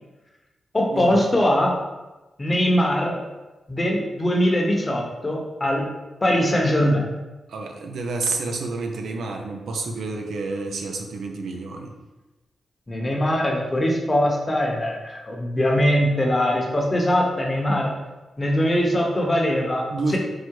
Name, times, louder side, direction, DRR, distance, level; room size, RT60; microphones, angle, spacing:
voice 1, 0.7-1.8 2.4-3.2 3.7-5.9 6.2-7.1 12.9-17.9 18.4-19.8, equal, 25° left, -1 dB, 0.9 m, -21 dB
voice 2, 7.5-11.9 19.9-20.2, right 3 dB, 85° right, 2 dB, 0.5 m, -29 dB
4.8 x 2.1 x 4.5 m, 1.1 s
cardioid pair, 85°, 0 cm